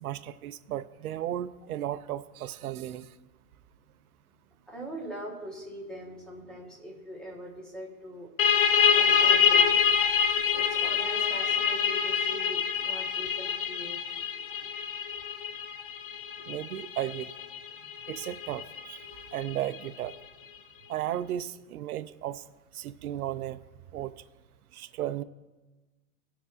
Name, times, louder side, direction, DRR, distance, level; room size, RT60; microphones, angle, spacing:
voice 1, 0.0-3.1 16.5-17.3 18.1-20.2 20.9-22.4 22.7-23.6 23.9-24.1 24.7-25.2, right 12 dB, 70° right, 12 dB, 0.6 m, -35 dB
voice 2, 4.7-8.3 8.9-9.8 10.5-14.0, equal, ahead, -4 dB, 1.0 m, -42 dB
sound 1, 8.4-19.7, left 7 dB, 35° left, 0.6 m, -26 dB
19.5 x 7.1 x 2.5 m, 1.2 s
hypercardioid pair, 165°, 46 cm